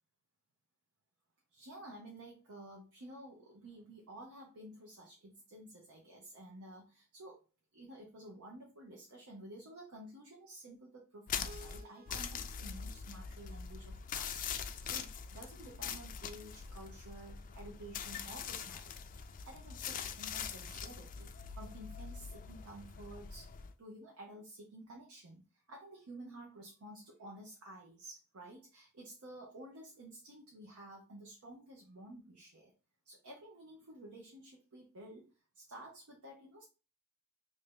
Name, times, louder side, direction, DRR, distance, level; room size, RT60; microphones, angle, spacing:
voice 1, 1.5-7.4 7.7-32.7 33.0-36.6, right 1 dB, 90° right, -1 dB, 0.8 m, -52 dB
sound 1, 11.3-23.7, left 7 dB, 40° left, 0.3 m, -43 dB
Keyboard (musical), 11.4-14.4, right 1 dB, 45° right, 0.4 m, -59 dB
3.2 x 2.7 x 3.6 m, 0.33 s
head